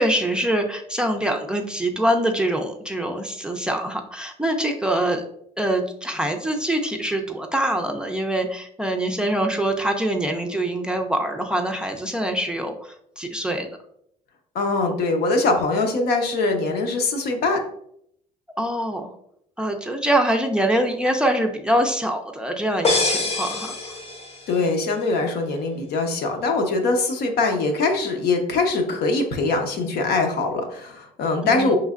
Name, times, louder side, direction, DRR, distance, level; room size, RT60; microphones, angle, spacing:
voice 1, 0.0-5.2 5.6-13.8 18.6-19.1 19.6-23.8 31.4-31.7, right 1 dB, 5° right, 3 dB, 0.5 m, -24 dB
voice 2, 14.5-17.6 24.5-31.7, left 3 dB, 70° left, 3 dB, 0.9 m, -22 dB
sound 1, 22.8-24.6, left 3 dB, 35° left, 0.8 m, -24 dB
5.3 x 3.2 x 2.4 m, 0.71 s
cardioid pair, 110°, 17 cm